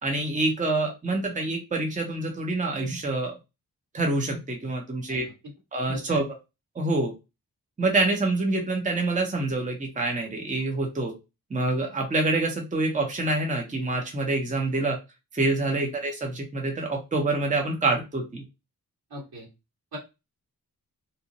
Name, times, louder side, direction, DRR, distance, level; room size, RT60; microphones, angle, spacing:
voice 1, 0.0-3.3 3.9-5.3 5.7-6.2 6.8-7.1 7.8-11.1 11.5-15.0 15.3-18.4, right 2 dB, 20° right, 2 dB, 0.7 m, -26 dB
voice 2, 5.8-6.2 15.6-15.9 19.1-19.5 19.9-20.0, left 1 dB, 80° right, -4 dB, 1.6 m, -40 dB
2.8 x 2.0 x 3.9 m, 0.26 s
wide cardioid pair, 160°, 36 cm